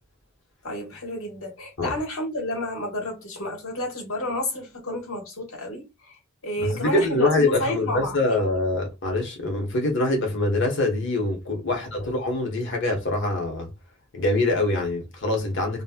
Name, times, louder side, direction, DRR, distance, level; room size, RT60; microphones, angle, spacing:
voice 1, 0.6-6.2 6.4-8.2 11.7-12.1, left 1 dB, 85° left, 1.4 m, -31 dB
voice 2, 6.6-13.7 14.1-15.8, left 2 dB, 60° left, 1.1 m, -24 dB
3.0 x 2.8 x 2.2 m
head